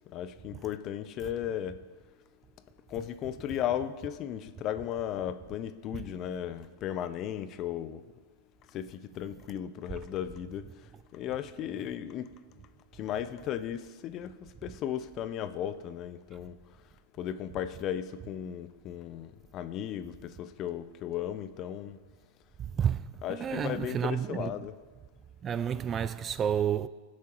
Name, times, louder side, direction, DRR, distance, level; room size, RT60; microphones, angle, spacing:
voice 1, 0.1-1.8 2.9-8.0 8.7-10.7 11.1-12.4 12.9-14.3 14.6-16.6 17.2-22.0 23.2-24.7, left 10 dB, 35° left, 0.5 m, -35 dB
voice 2, 23.3-24.5 25.4-26.9, right 8 dB, 25° right, 0.3 m, -30 dB
17.0 x 7.3 x 3.0 m
hypercardioid pair, 130°, 0 cm